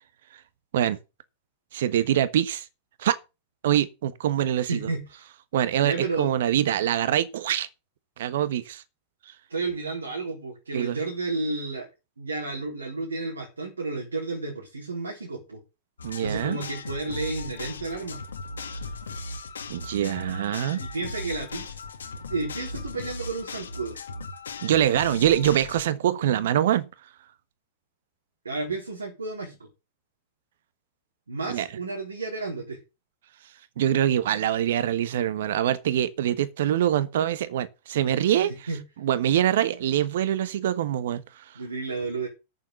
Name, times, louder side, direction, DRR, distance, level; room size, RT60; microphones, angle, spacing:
voice 1, 1.7-2.7 3.0-3.2 3.6-4.9 5.5-7.7 8.2-8.8 10.7-11.0 16.0-16.6 19.7-20.8 24.6-26.9 31.5-31.7 33.8-38.7 39.0-41.4, right 11 dB, 65° right, 1.2 m, -24 dB
voice 2, 4.7-5.2 5.8-6.3 9.5-11.9 12.2-15.6 16.2-18.2 20.8-21.8 22.1-24.0 28.4-29.7 31.3-32.8 38.3-38.4 38.7-38.8 41.6-42.3, right 3 dB, 90° right, 3.9 m, -32 dB
sound 1, 16.0-25.8, left 3 dB, 80° left, 1.8 m, -37 dB
9.4 x 7.1 x 7.5 m
hypercardioid pair, 100°, 0 cm